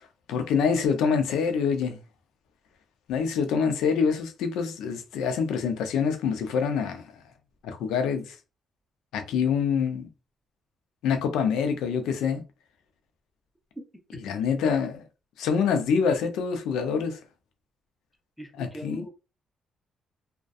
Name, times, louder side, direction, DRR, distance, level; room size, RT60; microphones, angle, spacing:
voice 1, 0.3-2.0 3.1-7.0 7.6-8.4 9.1-10.1 11.0-12.4 14.1-15.0 15.4-17.2 18.6-19.1, left 6 dB, 90° left, 0.5 m, -26 dB
voice 2, 18.4-19.1, right 1 dB, ahead, 0.8 m, -41 dB
2.5 x 2.2 x 2.3 m
cardioid pair, 90°, 0 cm